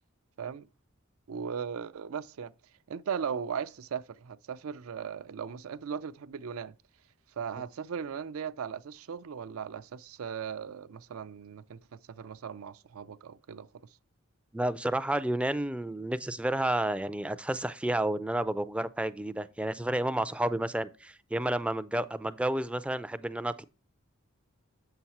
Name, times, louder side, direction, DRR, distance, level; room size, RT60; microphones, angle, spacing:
voice 1, 1.3-2.5 2.9-6.7 7.4-13.7, right 7 dB, 80° right, 0.5 m, -38 dB
voice 2, 14.5-23.6, right 1 dB, 5° right, 0.3 m, -31 dB
7.7 x 5.9 x 4.2 m
head